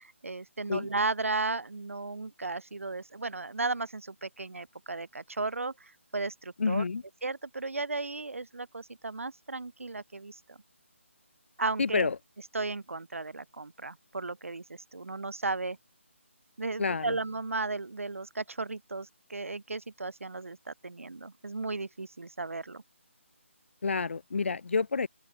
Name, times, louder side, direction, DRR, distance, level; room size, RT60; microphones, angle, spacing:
voice 1, 0.0-6.8 7.2-10.6 11.6-12.1 12.5-15.8 16.6-22.8, right 3 dB, 80° right, 0.4 m, -35 dB
voice 2, 6.6-7.0 11.8-12.2 16.8-17.2 23.8-25.1, left 4 dB, 65° left, 0.3 m, -29 dB
open air
figure-of-eight pair, 150°, 7 cm